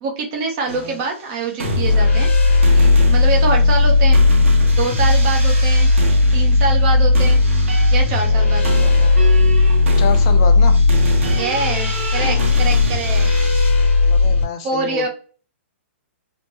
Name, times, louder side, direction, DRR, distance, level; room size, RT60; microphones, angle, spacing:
voice 1, 0.0-2.3 2.7-4.2 4.7-5.9 6.3-7.4 7.9-9.0 11.3-13.6 14.6-15.1, right 3 dB, 25° right, 1 dB, 0.7 m, -25 dB
voice 2, 0.7-1.0 8.8-9.1 10.0-10.8 14.0-15.1, left 7 dB, 25° left, 6 dB, 0.4 m, -28 dB
sound 1, 0.7-1.0 1.5-2.4 2.6-13.7, right 4 dB, 85° right, 0.9 m, -29 dB
sound 2, 1.6-14.4, left 3 dB, 75° left, 1.3 m, -15 dB
3.0 x 2.1 x 3.1 m, 0.39 s
hypercardioid pair, 175°, 7 cm